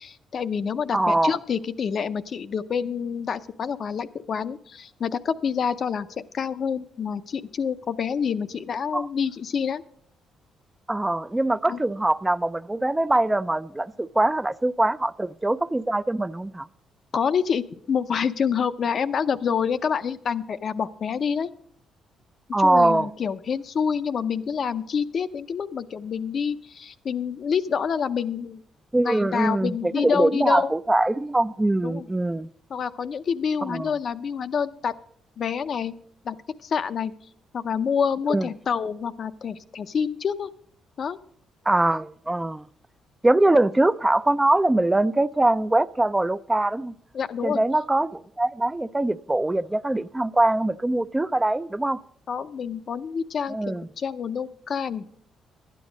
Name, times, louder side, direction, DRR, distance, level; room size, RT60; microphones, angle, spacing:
voice 1, 0.0-6.1 6.3-9.8 11.7-11.8 17.1-21.5 22.6-28.6 29.0-30.7 31.8-32.1 32.7-34.9 35.4-35.9 36.2-36.4 36.6-37.1 37.5-40.5 41.0-41.2 47.1-47.6 52.3-55.1, left 6 dB, 55° left, 0.6 m, -27 dB
voice 2, 0.9-1.4 8.9-9.1 10.9-16.7 22.5-23.1 28.9-32.5 33.7-33.9 38.3-38.5 41.7-42.7 43.2-46.9 47.4-52.0 53.5-53.9, right 2 dB, 15° right, 0.4 m, -22 dB
11.5 x 9.9 x 5.1 m
cardioid pair, 90°, 0 cm